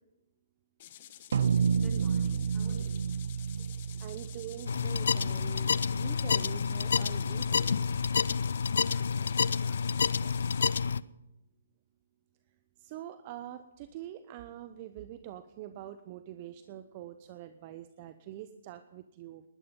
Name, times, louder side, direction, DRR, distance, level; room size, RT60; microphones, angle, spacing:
sound 1, 0.8-10.8, left 12 dB, 40° left, 1.3 m, -51 dB
sound 2, 1.3-5.9, right 6 dB, 60° right, 0.5 m, -31 dB
voice 1, 1.4-3.1 3.3-3.7 8.9-10.6, equal, 5° right, -2 dB, 6.8 m, -51 dB
voice 2, 4.0-7.9 12.8-19.5, right 12 dB, 35° right, 11 dB, 0.8 m, -45 dB
sound 3, 4.7-11.0, left 6 dB, 65° left, 0.5 m, -29 dB
19.5 x 12.0 x 5.4 m, 0.94 s
figure-of-eight pair, 135°, 0 cm